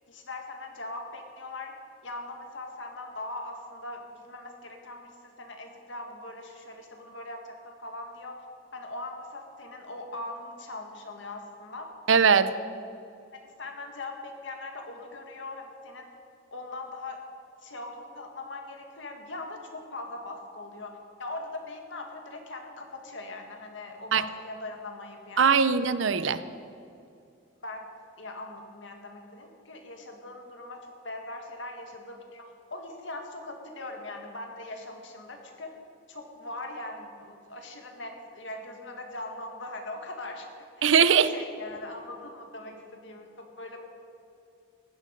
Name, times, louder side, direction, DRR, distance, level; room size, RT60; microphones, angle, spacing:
voice 1, 0.1-1.7 2.0-8.4 8.7-11.9 13.3-16.1 16.5-17.2 17.6-25.6 27.6-27.9 28.2-35.7 36.1-40.8 41.2-43.8, left 2 dB, 70° left, 3 dB, 1.9 m, -41 dB
voice 2, 12.1-12.5 24.1-24.2 25.4-26.4 40.8-41.3, right 6 dB, 75° right, 14 dB, 0.6 m, -20 dB
16.0 x 11.5 x 5.2 m, 2.5 s
head